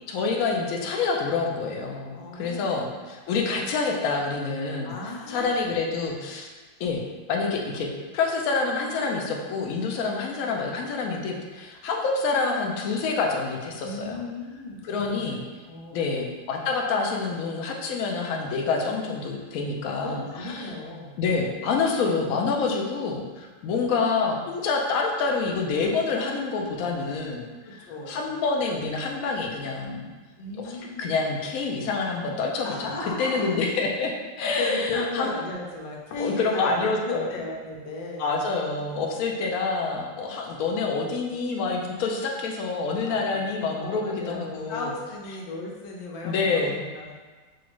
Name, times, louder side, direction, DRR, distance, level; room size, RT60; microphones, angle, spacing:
voice 1, 0.1-5.0 5.3-6.5 6.8-7.0 7.3-14.2 14.8-15.4 15.9-20.7 21.2-30.1 30.6-30.7 31.0-34.1 34.4-35.3 36.2-37.3 38.2-44.9 46.2-46.8, left 4 dB, 65° left, 0 dB, 0.9 m, -27 dB
voice 2, 2.1-2.9 4.8-6.3 13.8-16.2 20.0-21.2 27.6-28.4 30.4-31.1 32.6-33.6 34.6-38.3 43.0-47.1, left 2 dB, 90° left, -2 dB, 1.5 m, -36 dB
6.2 x 2.4 x 3.0 m, 1.3 s
omnidirectional pair, 2.0 m